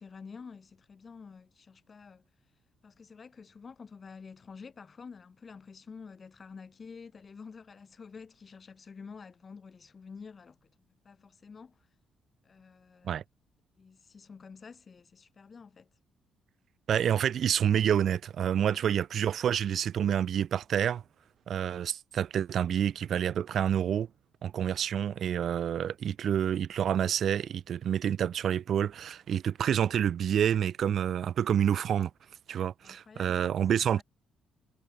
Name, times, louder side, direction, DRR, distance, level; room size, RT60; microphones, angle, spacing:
voice 1, 0.0-2.2 2.8-10.7 11.0-11.9 12.4-13.1 13.8-15.9 18.8-18.9 32.8-33.4 33.7-34.0, left 5 dB, 40° left, 5.0 m, -49 dB
voice 2, 16.9-21.0 21.5-24.1 24.4-32.1 32.5-34.0, right 9 dB, 65° right, 0.7 m, -28 dB
cardioid pair, 90°, 0 cm